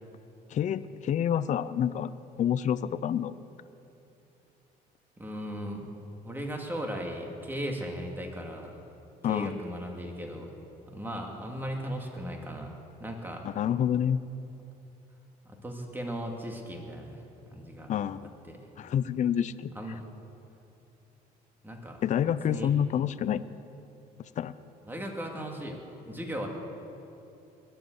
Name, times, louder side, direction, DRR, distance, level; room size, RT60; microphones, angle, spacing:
voice 1, 0.5-2.1 2.4-3.3 9.2-9.6 13.4-14.2 17.9-18.3 18.8-19.7 22.0-23.4 24.4-24.5, left 9 dB, 45° left, 15 dB, 0.5 m, -28 dB
voice 2, 5.2-6.0 6.2-8.8 9.3-10.5 10.9-12.7 13.0-13.4 15.4-17.9 18.4-18.7 19.7-20.0 21.6-22.0 22.4-22.7 22.9-23.0 24.8-26.5, equal, 10° right, 1 dB, 2.4 m, -37 dB
21.0 x 8.0 x 8.1 m, 2.9 s
cardioid pair, 110°, 17 cm